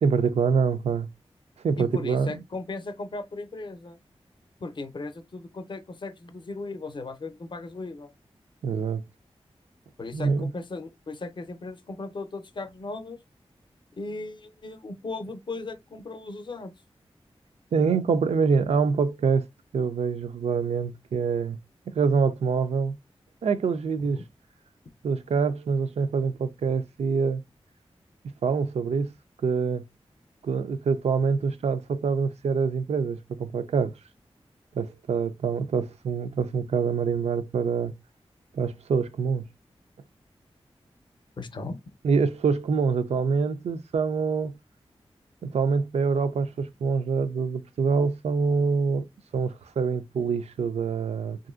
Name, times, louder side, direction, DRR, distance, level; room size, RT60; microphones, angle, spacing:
voice 1, 0.0-1.1 1.6-2.4 8.6-9.0 10.1-10.5 17.7-19.5 19.7-21.6 21.9-23.0 23.4-24.2 25.0-27.4 28.4-29.1 29.4-29.8 30.4-34.0 34.7-37.9 38.5-39.5 42.0-44.5 45.4-49.1 49.3-51.4, right 5 dB, 85° right, 0.4 m, -25 dB
voice 2, 1.8-4.0 4.6-8.1 10.0-13.2 14.0-16.7 24.1-24.2 41.4-41.8, left 3 dB, 50° left, 0.5 m, -37 dB
3.0 x 2.5 x 2.4 m
wide cardioid pair, 85°, 11 cm